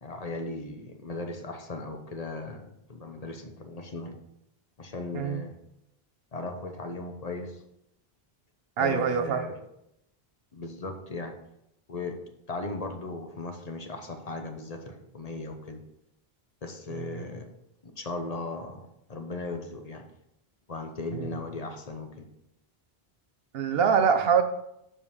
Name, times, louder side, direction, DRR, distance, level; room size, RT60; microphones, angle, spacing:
voice 1, 0.0-4.2 4.8-5.6 6.3-7.6 8.8-9.6 10.5-11.4 11.9-12.2 12.5-15.8 16.6-17.5 17.8-20.1 20.7-22.3 23.7-24.0, left 2 dB, 40° left, 5 dB, 1.0 m, -37 dB
voice 2, 8.8-9.4 16.9-17.2 21.1-21.3 23.5-24.4, right 7 dB, 70° right, 8 dB, 1.0 m, -24 dB
7.4 x 5.0 x 5.5 m, 0.81 s
omnidirectional pair, 1.0 m